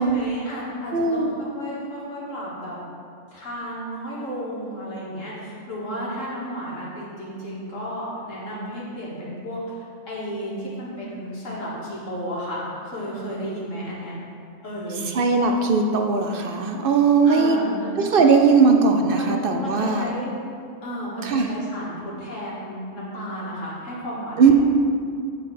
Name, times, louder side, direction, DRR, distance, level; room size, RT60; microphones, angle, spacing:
voice 1, 0.0-2.8 3.3-9.7 10.1-14.1 14.6-15.0 17.2-18.0 19.1-20.3 20.8-24.5, equal, 80° left, -6 dB, 2.3 m, -33 dB
voice 2, 0.9-1.4 15.1-17.6 18.0-20.1 21.2-21.5 24.4-24.5, right 5 dB, 55° right, 4 dB, 0.7 m, -19 dB
8.1 x 4.8 x 5.8 m, 2.3 s
omnidirectional pair, 1.3 m